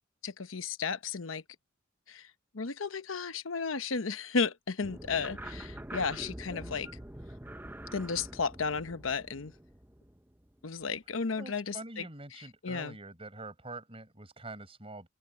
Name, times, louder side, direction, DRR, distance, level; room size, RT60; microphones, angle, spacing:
voice 1, 0.2-1.4 2.1-2.3 2.5-6.9 7.9-9.5 10.6-12.1 12.6-13.0, left 5 dB, 90° left, 0.9 m, -33 dB
sound 1, 4.8-10.8, right 1 dB, 10° right, 0.9 m, -45 dB
voice 2, 11.4-15.1, right 2 dB, 30° right, 6.3 m, -45 dB
open air
head